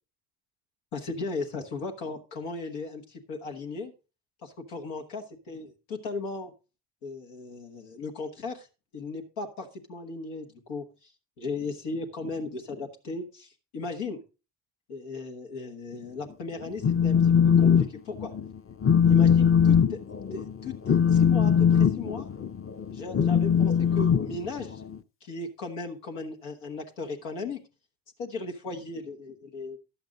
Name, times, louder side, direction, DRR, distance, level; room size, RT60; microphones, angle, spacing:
voice 1, 0.9-3.9 4.4-6.5 7.0-8.7 8.9-11.1 11.4-14.2 14.9-18.3 19.1-20.0 20.3-22.3 22.9-24.8 25.2-27.6 28.2-29.8, left 3 dB, 85° left, 3 dB, 1.5 m, -37 dB
Telephone, 16.6-17.9 18.2-18.5 18.8-24.9, left 7 dB, 25° left, 0.7 m, -21 dB
11.5 x 8.1 x 3.9 m, 0.31 s
hypercardioid pair, 50°, 49 cm